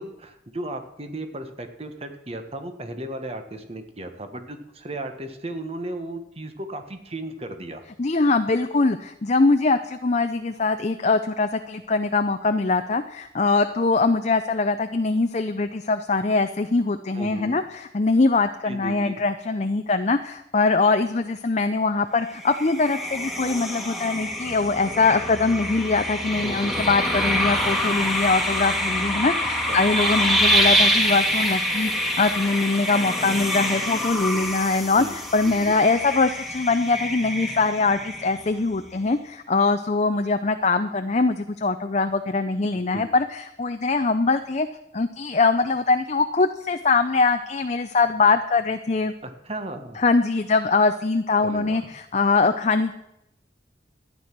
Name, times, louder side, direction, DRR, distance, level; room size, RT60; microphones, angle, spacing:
voice 1, 0.0-7.8 17.1-17.6 18.6-19.2 26.4-26.9 29.7-29.8 34.1-34.5 34.8-35.2 35.4-35.7 42.9-43.1 49.2-50.0 51.4-51.9, right 1 dB, 35° right, 7 dB, 1.3 m, -35 dB
voice 2, 8.0-44.7 44.9-49.1 50.0-52.9, left 3 dB, 40° left, 7 dB, 0.6 m, -22 dB
sound 1, 22.3-38.6, equal, ahead, 1.7 m, -25 dB
13.0 x 9.7 x 6.0 m, 0.85 s
head